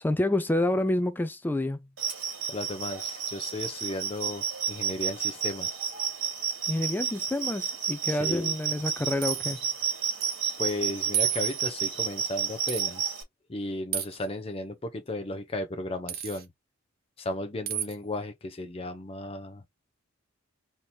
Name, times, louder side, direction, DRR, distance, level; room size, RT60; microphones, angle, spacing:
voice 1, 0.0-1.9 6.7-9.6, left 1 dB, 10° left, 0.3 m, -28 dB
sound 1, 2.0-13.2, right 8 dB, 65° right, 2.5 m, -31 dB
voice 2, 2.5-5.8 8.1-8.5 10.6-13.1 13.5-16.5 17.2-19.6, left 2 dB, 30° left, 0.7 m, -35 dB
sound 2, 8.9-9.6 10.2-10.4 10.7-10.8 11.1-11.8 12.7-12.9 13.9-14.3 16.1-16.4 17.7-18.0, right 12 dB, 50° right, 0.9 m, -32 dB
4.2 x 2.9 x 3.3 m
head